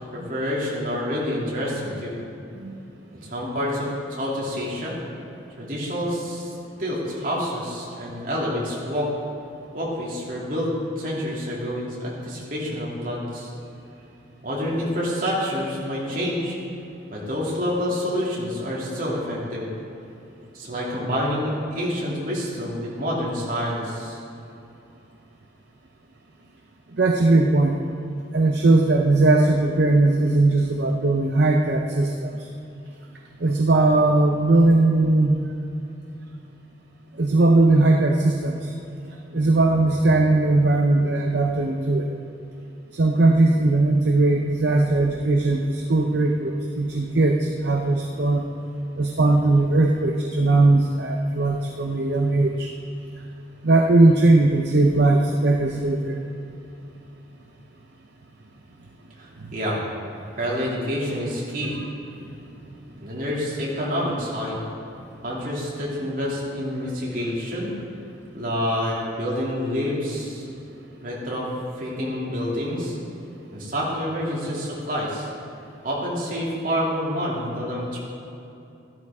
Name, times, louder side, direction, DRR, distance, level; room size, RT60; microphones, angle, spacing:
voice 1, 0.1-2.1 3.2-5.0 5.6-6.5 6.8-9.1 9.7-13.5 14.4-16.6 17.1-19.7 20.5-24.2 59.2-59.8 60.4-61.8 63.0-64.6 65.2-67.7 68.3-70.4 71.0-71.5 71.8-73.0 73.5-75.3 75.8-78.0, equal, 45° right, -5 dB, 2.8 m, -27 dB
voice 2, 27.0-27.8 28.3-32.4 33.4-35.4 37.2-38.7 39.3-42.1 42.9-48.4 49.0-52.7 53.6-56.2 61.7-61.9, right 2 dB, 65° right, 2 dB, 0.7 m, -19 dB
13.0 x 12.5 x 3.6 m, 2.8 s
head